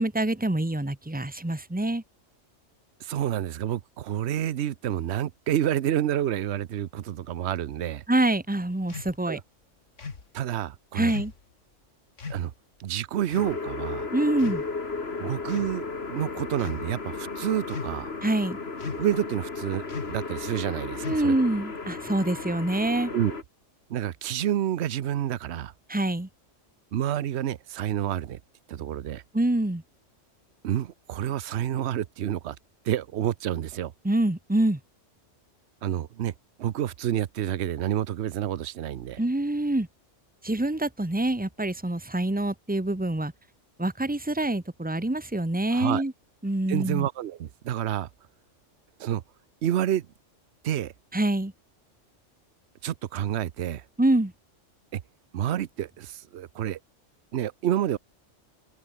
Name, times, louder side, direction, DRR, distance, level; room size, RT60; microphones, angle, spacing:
voice 1, 0.0-2.0 8.1-9.4 10.9-11.3 14.1-14.6 18.2-18.6 21.0-23.1 25.9-26.3 29.3-29.8 34.0-34.8 39.2-39.9 40.4-43.3 43.8-46.1 46.4-47.1 51.1-51.5 54.0-54.3, right 1 dB, 5° right, 1.5 m, -25 dB
voice 2, 3.0-8.0 9.3-9.4 10.3-11.1 12.3-12.5 12.8-14.1 15.2-18.1 19.0-21.3 23.1-23.4 23.9-25.7 26.9-28.4 28.7-29.2 30.6-32.6 32.8-33.9 35.8-36.3 36.6-39.2 45.7-46.0 46.7-48.1 49.0-49.2 49.6-50.1 50.6-50.9 52.8-53.8 54.9-55.0 55.3-56.8 57.3-58.0, right 11 dB, 65° right, 1.0 m, -29 dB
sound 1, 8.9-9.2 10.0-10.3 11.1-11.4 12.2-12.5 13.3-13.6 14.4-14.9 15.4-15.8 16.5-16.9 17.7-18.1 18.8-19.2 19.9-20.2 21.0-21.5, left 4 dB, 75° left, 2.4 m, -38 dB
sound 2, 13.4-23.4, left 4 dB, 55° left, 2.5 m, -35 dB
open air
omnidirectional pair, 1.3 m